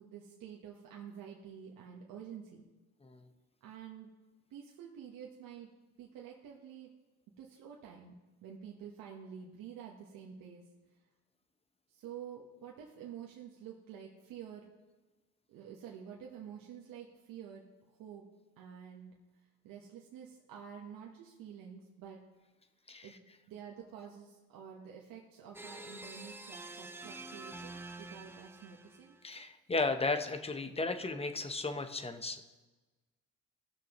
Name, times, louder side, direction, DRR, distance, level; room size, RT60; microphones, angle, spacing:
voice 1, 0.0-2.6 3.6-4.1 4.5-5.7 6.0-6.9 7.4-8.2 8.4-10.6 11.9-14.7 15.5-18.2 18.6-19.1 19.6-22.2 23.0-23.1 23.5-29.2, right 8 dB, 75° right, -1 dB, 1.2 m, -49 dB
sound 1, 25.5-29.2, right 2 dB, 5° right, 0.6 m, -47 dB
voice 2, 29.2-32.4, left 3 dB, 15° left, 8 dB, 0.9 m, -34 dB
16.5 x 6.3 x 3.0 m, 1.2 s
cardioid pair, 85°, 34 cm